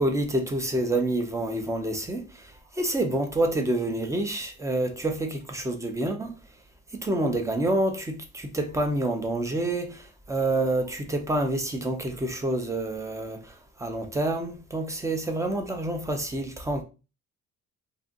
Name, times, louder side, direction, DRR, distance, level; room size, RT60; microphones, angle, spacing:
voice 1, 0.0-2.2 2.8-6.3 6.9-13.5 13.8-16.8, right 1 dB, 10° right, 0.4 m, -27 dB
2.6 x 2.4 x 3.6 m
cardioid pair, 150°, 33 cm